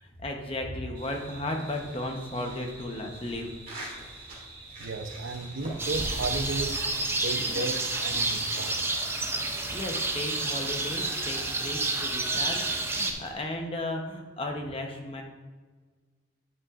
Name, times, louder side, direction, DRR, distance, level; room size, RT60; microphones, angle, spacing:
voice 1, 0.0-3.6 9.5-15.2, left 1 dB, 30° left, 3 dB, 0.8 m, -35 dB
sound 1, 0.9-13.3, right 1 dB, 45° right, 2.2 m, -44 dB
voice 2, 4.8-6.8 7.2-9.0, right 3 dB, 75° right, 8 dB, 0.6 m, -34 dB
sound 2, 5.8-13.1, right 2 dB, 10° right, 0.5 m, -30 dB
9.8 x 7.4 x 2.5 m, 1.4 s
head